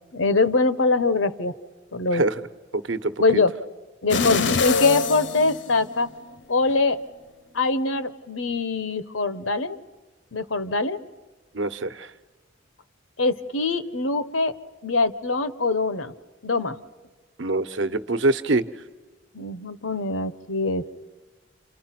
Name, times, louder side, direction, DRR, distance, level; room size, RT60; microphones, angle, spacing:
voice 1, 0.1-1.5 1.9-2.2 3.2-3.5 4.0-6.1 6.5-7.0 7.5-9.8 10.3-11.0 13.2-14.5 14.8-16.1 16.4-16.8 19.3-21.0, left 3 dB, 85° left, 13 dB, 1.2 m, -23 dB
voice 2, 2.7-3.1 11.5-12.1 17.4-18.6, right 2 dB, 70° right, 10 dB, 1.0 m, -24 dB
sound 1, 4.1-6.2 6.7-6.8, left 5 dB, 65° left, 0.8 m, -24 dB
30.0 x 27.0 x 6.0 m, 1.2 s
head